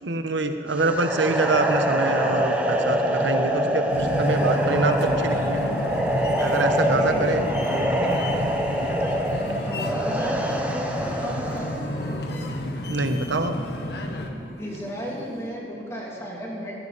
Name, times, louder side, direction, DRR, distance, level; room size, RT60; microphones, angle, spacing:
voice 1, 0.0-5.7 6.4-7.5 7.8-8.2 12.9-13.5, right 3 dB, 90° right, 7 dB, 1.1 m, -25 dB
sound 1, 0.7-11.8, equal, 10° right, 0.9 m, -25 dB
sound 2, 1.4-15.5, left 1 dB, 50° left, 2.7 m, -42 dB
sound 3, 3.9-14.3, left 1 dB, 65° left, 1.3 m, -31 dB
voice 2, 6.3-7.3 9.3-11.7 14.6-16.8, equal, 15° left, -4 dB, 3.0 m, -34 dB
19.0 x 15.5 x 4.2 m, 2.7 s
head